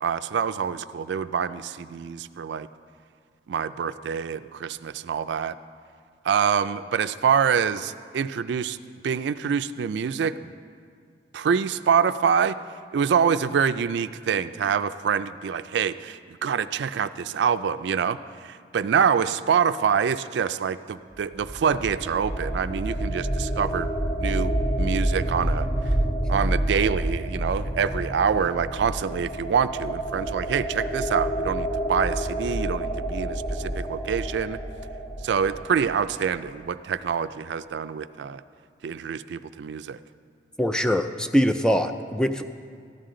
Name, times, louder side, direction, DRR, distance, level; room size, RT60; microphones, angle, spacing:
voice 1, 0.0-2.7 3.5-5.5 6.2-8.8 9.0-10.3 11.3-12.6 12.9-18.2 18.4-23.9 24.2-25.7 26.3-34.6 35.2-38.4 38.8-40.0, right 7 dB, 75° right, 13 dB, 0.3 m, -25 dB
sound 1, 21.2-36.0, right 1 dB, 25° left, 1.9 m, -28 dB
voice 2, 40.6-42.5, equal, 5° left, 8 dB, 0.4 m, -23 dB
14.5 x 11.0 x 3.8 m, 2.2 s
head